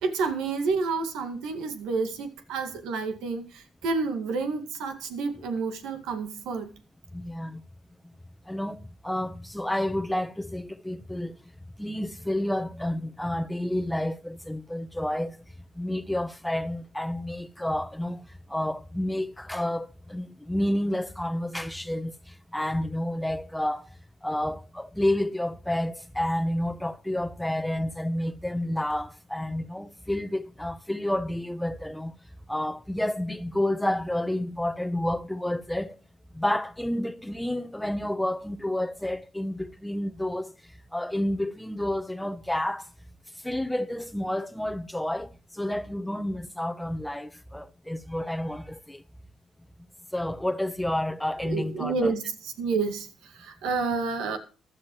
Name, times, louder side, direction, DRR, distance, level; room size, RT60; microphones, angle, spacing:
voice 1, 0.0-6.7 51.4-54.4, right 4 dB, 90° right, 2.0 m, -29 dB
voice 2, 7.1-7.6 8.5-11.4 11.8-15.4 15.7-23.9 24.2-32.1 32.5-36.0 36.3-40.5 40.9-42.8 43.4-49.0 50.1-52.1, left 1 dB, 5° left, 0.9 m, -30 dB
15.5 x 12.0 x 3.2 m
cardioid pair, 90°, 0 cm